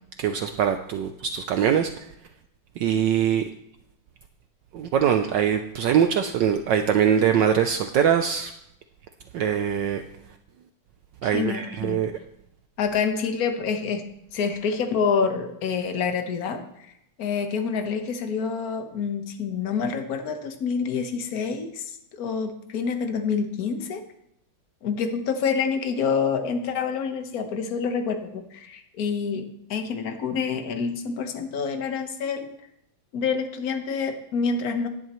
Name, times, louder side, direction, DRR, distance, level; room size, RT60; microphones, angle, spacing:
voice 1, 0.2-1.9 2.8-3.4 4.7-8.5 9.3-10.0 11.2-12.1, right 8 dB, 70° right, 7 dB, 1.2 m, -22 dB
voice 2, 11.2-12.0 12.8-14.1 14.3-16.9 17.2-24.0 24.8-32.5 33.1-34.9, left 5 dB, 50° left, 6 dB, 1.5 m, -27 dB
17.0 x 10.5 x 3.1 m, 0.77 s
omnidirectional pair, 2.3 m